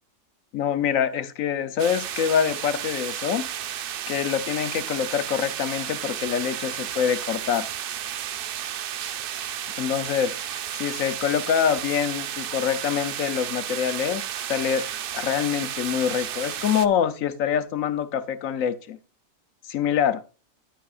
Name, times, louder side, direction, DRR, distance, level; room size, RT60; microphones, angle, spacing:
voice 1, 0.5-3.8 4.1-7.7 9.8-14.9 15.1-19.0 19.7-20.2, left 8 dB, 75° left, 1.1 m, -25 dB
sound 1, 1.8-16.9, right 10 dB, 65° right, 0.5 m, -32 dB
10.0 x 9.5 x 2.4 m
omnidirectional pair, 1.4 m